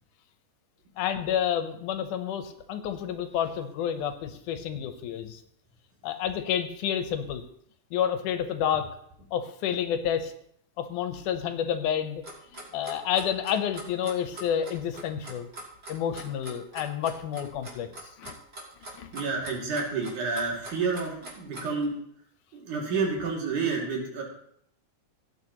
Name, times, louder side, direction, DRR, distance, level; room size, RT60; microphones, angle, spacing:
voice 1, 1.0-5.4 6.0-7.4 7.9-8.9 9.3-10.3 10.8-12.2 12.5-15.5 15.9-17.9 18.2-18.3 18.9-19.1, left 9 dB, 90° left, 8 dB, 2.4 m, -29 dB
Clock, 12.2-21.8, right 1 dB, 30° right, 3.0 m, -42 dB
voice 2, 19.1-21.9 22.5-24.2, right 4 dB, 80° right, -2 dB, 4.0 m, -29 dB
17.5 x 9.0 x 3.0 m, 0.69 s
omnidirectional pair, 3.6 m